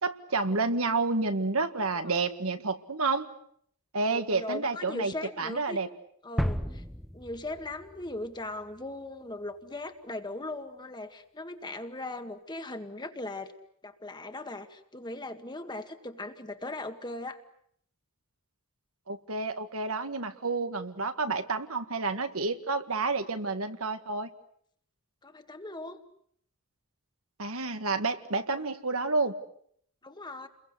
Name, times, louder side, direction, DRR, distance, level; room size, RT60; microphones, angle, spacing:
voice 1, 0.0-3.3 3.9-5.9 19.1-24.3 27.4-29.3, right 3 dB, 70° right, 8 dB, 1.9 m, -30 dB
voice 2, 4.0-5.8 6.2-6.8 7.1-13.5 13.8-17.4 25.2-26.0 28.5-28.7 30.0-30.5, left 2 dB, 20° left, 7 dB, 1.9 m, -39 dB
sound 1, 6.4-8.3, equal, ahead, 1.1 m, -33 dB
30.0 x 22.5 x 8.1 m, 0.67 s
head